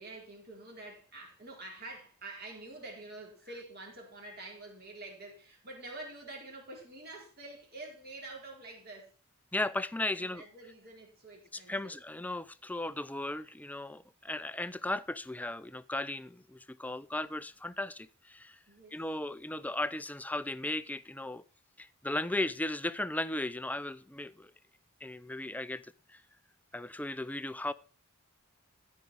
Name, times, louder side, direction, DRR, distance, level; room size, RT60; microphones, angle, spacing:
voice 1, 0.0-9.1 10.2-12.0 18.7-19.0, right 2 dB, 45° right, 4.3 m, -47 dB
voice 2, 9.5-10.4 11.5-18.6 18.9-21.4 21.8-24.5 25.0-25.8 26.1-26.2 26.7-27.7, left 1 dB, 5° left, 0.4 m, -36 dB
14.5 x 5.4 x 6.2 m
head